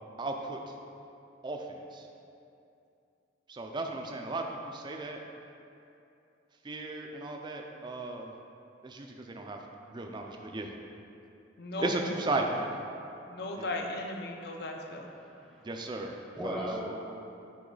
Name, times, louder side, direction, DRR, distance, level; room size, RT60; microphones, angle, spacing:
voice 1, 0.2-0.6 1.4-2.1 3.5-5.2 6.6-8.3 8.8-9.6 9.9-10.7 11.8-12.7 13.6-13.7 15.6-16.1 16.4-16.6, right 2 dB, 25° right, 2 dB, 0.4 m, -35 dB
voice 2, 11.6-12.0 13.3-15.1, left 2 dB, 55° left, 2 dB, 0.6 m, -36 dB
voice 3, 15.2-15.7 16.0-16.9, equal, 5° left, -4 dB, 0.7 m, -38 dB
9.2 x 3.1 x 3.9 m, 2.7 s
head